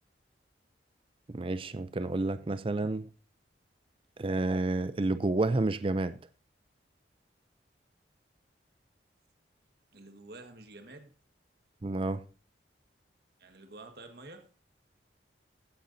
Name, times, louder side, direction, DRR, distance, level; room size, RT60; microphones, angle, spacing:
voice 1, 1.3-3.1 4.2-6.2 11.8-12.2, right 2 dB, 30° right, 0.5 m, -30 dB
voice 2, 9.9-11.1 13.4-14.5, right 2 dB, 60° right, 1.7 m, -49 dB
16.0 x 9.1 x 2.7 m
head